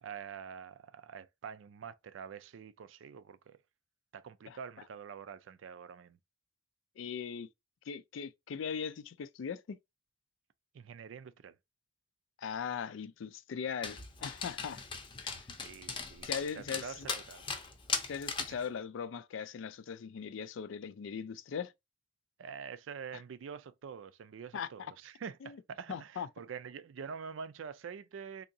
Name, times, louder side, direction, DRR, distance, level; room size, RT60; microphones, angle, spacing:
voice 1, 0.0-3.6 4.1-6.2 10.7-11.5 15.6-16.3 16.5-17.4 18.5-18.7 22.4-28.4, right 6 dB, 85° right, 0.4 m, -46 dB
voice 2, 7.0-7.5 7.9-9.8 12.4-14.8 15.2-15.4 16.2-17.1 18.1-21.7 24.5-24.9 25.4-25.6 25.9-26.3, left 7 dB, 85° left, 0.4 m, -39 dB
Dog, 13.8-18.6, left 4 dB, 25° left, 0.6 m, -39 dB
3.6 x 2.7 x 2.6 m
head